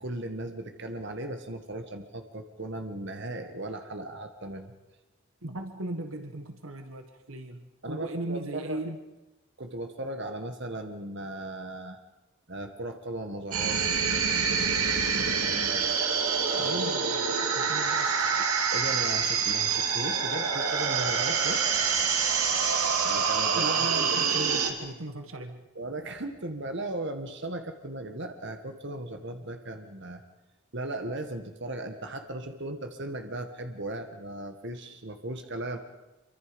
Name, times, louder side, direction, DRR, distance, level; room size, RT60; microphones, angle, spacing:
voice 1, 0.0-4.7 7.8-8.8 9.6-12.0 12.5-13.8 15.1-16.1 16.4-16.8 18.7-21.6 23.0-24.2 25.7-30.2 30.7-35.8, right 1 dB, 55° right, 5 dB, 1.7 m, -37 dB
voice 2, 5.4-9.0 16.6-18.1 23.5-25.6, right 2 dB, 70° right, 6 dB, 1.7 m, -37 dB
sound 1, 13.5-24.7, right 6 dB, 90° right, 2.6 m, -26 dB
26.5 x 24.5 x 5.3 m, 1.0 s
head